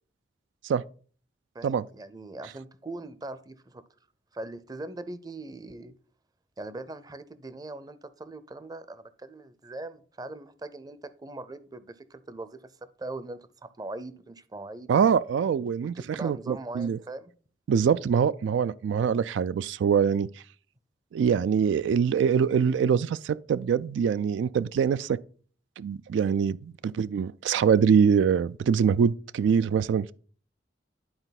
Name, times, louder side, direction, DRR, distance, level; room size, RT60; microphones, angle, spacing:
voice 1, 1.5-3.8 4.3-5.9 6.6-12.7 13.0-14.9 15.8-17.3, right 2 dB, 20° right, 0.5 m, -41 dB
voice 2, 14.9-17.0 17.7-20.3 21.1-25.2 25.8-30.1, right 7 dB, 85° right, 0.3 m, -24 dB
11.0 x 4.3 x 4.1 m
head